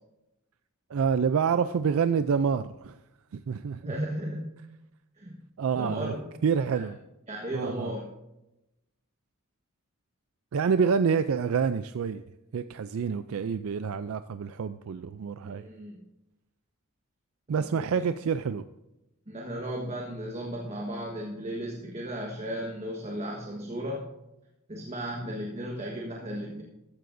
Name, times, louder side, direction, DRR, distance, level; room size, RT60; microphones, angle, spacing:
voice 1, 0.9-3.0 3.3-3.9 5.6-6.1 6.4-7.0 7.5-7.9 10.5-12.2 12.5-15.7 17.5-18.6, right 6 dB, 70° right, 11 dB, 0.4 m, -27 dB
voice 2, 3.8-4.5 5.2-5.4 5.7-6.3 6.7-6.8 7.3-8.1 15.4-16.0 17.5-18.0 19.3-24.1 24.7-26.6, equal, 30° right, -1 dB, 1.3 m, -35 dB
14.5 x 12.5 x 2.6 m, 0.92 s
head